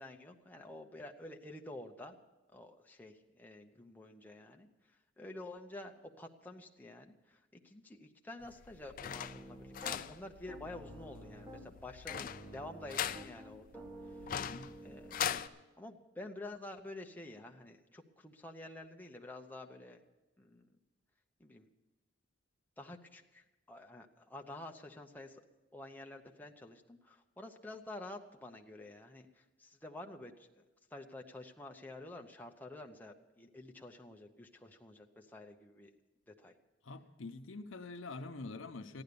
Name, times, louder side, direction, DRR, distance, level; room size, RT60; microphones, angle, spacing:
voice 1, 0.0-2.2 2.5-14.3 14.8-15.2 15.8-20.0 20.4-20.7 21.4-21.7 22.8-25.4 25.7-30.6 30.9-35.9 36.3-36.5, left 2 dB, 10° left, 2 dB, 0.8 m, -49 dB
sound 1, 8.4-15.5, left 9 dB, 45° left, 0.4 m, -41 dB
Piano, 9.0-10.0 10.5-11.7 12.1-15.5, right 1 dB, 10° right, 1.3 m, -51 dB
voice 2, 14.3-14.7 36.8-39.0, left 3 dB, 85° left, 8 dB, 0.8 m, -45 dB
14.5 x 10.5 x 6.9 m, 1.1 s
head